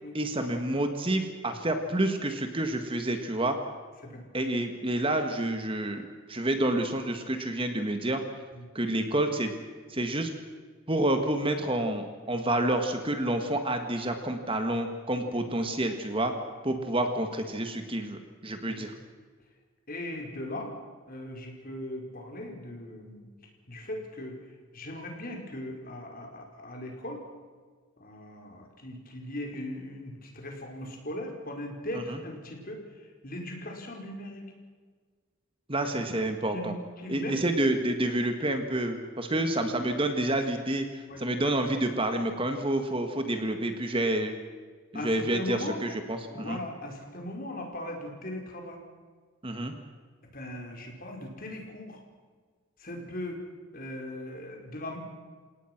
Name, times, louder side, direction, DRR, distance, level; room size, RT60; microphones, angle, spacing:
voice 1, 0.1-3.6 4.3-6.0 6.3-8.2 8.8-9.5 9.9-10.3 10.9-16.3 16.6-18.9 31.9-32.2 35.7-36.7 37.1-44.3 44.9-46.6 49.4-49.7, right 1 dB, 25° right, 6 dB, 1.8 m, -29 dB
voice 2, 19.9-20.7 21.1-23.3 23.7-24.4 24.7-27.2 28.0-34.4 36.5-37.4 39.3-39.4 41.1-41.2 44.9-45.8 46.3-48.8 50.3-52.0 52.8-53.4 53.7-55.0, left 1 dB, 45° left, 2 dB, 4.9 m, -39 dB
29.5 x 18.0 x 6.1 m, 1.5 s
head